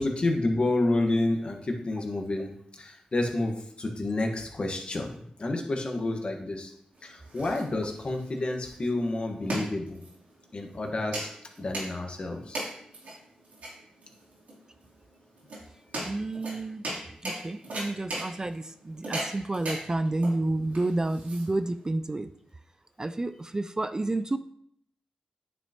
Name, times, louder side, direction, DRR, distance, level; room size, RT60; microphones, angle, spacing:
voice 1, 0.0-2.5 2.8-6.7 7.0-10.0 10.5-11.3 11.6-12.6, left 2 dB, 45° left, 3 dB, 1.4 m, -29 dB
sound 1, 6.9-21.9, right 1 dB, 90° right, 3.3 m, -38 dB
voice 2, 16.0-16.8 17.2-22.3 23.0-24.4, right 2 dB, 25° right, 11 dB, 0.3 m, -30 dB
9.4 x 6.0 x 3.0 m, 0.68 s
cardioid pair, 70°, 3 cm